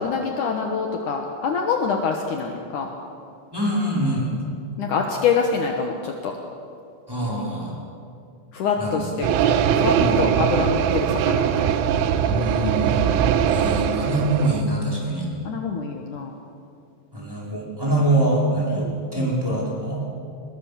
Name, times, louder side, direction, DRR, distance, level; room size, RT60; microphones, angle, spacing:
voice 1, 0.0-2.9 4.8-6.4 8.5-11.7 15.5-16.3 18.8-19.3, left 5 dB, 80° left, 2 dB, 1.8 m, -26 dB
voice 2, 3.5-4.3 7.1-7.7 8.8-9.0 9.9-10.6 12.2-13.1 13.5-15.3 17.1-20.0, right 1 dB, 5° right, -5 dB, 4.7 m, -24 dB
sound 1, 9.2-14.6, right 8 dB, 90° right, 3.4 m, -21 dB
22.5 x 21.5 x 7.1 m, 2.4 s
omnidirectional pair, 5.6 m